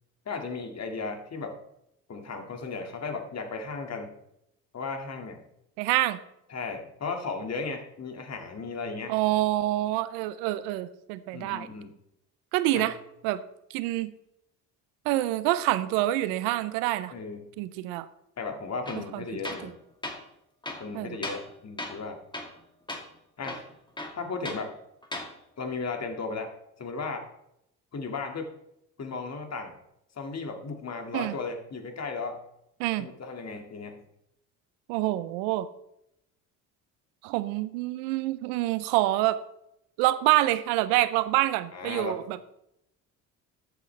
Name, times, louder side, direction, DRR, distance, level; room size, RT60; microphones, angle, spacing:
voice 1, 0.3-1.6 2.1-4.1 4.7-5.4 6.5-9.1 11.3-11.9 12.7-12.9 17.1-17.5 18.4-19.8 20.8-22.2 23.4-23.6 24.2-24.7 25.6-26.5 26.8-27.3 27.9-28.5 29.0-29.8 30.2-32.4 33.0-34.0 41.7-42.2, left 4 dB, 40° left, 5 dB, 2.2 m, -35 dB
voice 2, 5.8-6.2 9.1-11.7 12.5-12.9 13.2-13.4 13.7-14.1 15.0-17.1 17.6-18.1 19.1-19.2 20.9-21.2 31.1-31.3 32.8-33.1 34.9-35.7 37.2-39.4 40.0-42.4, right 16 dB, 85° right, 15 dB, 0.7 m, -26 dB
Tools, 18.9-19.1 19.4-19.7 20.0-20.2 20.6-21.5 21.8-22.1 22.3-22.6 22.9-23.0 23.4-24.7 25.0-25.3, left 1 dB, 10° left, 2.3 m, -37 dB
13.5 x 8.2 x 3.3 m, 0.79 s
supercardioid pair, 65°, 39 cm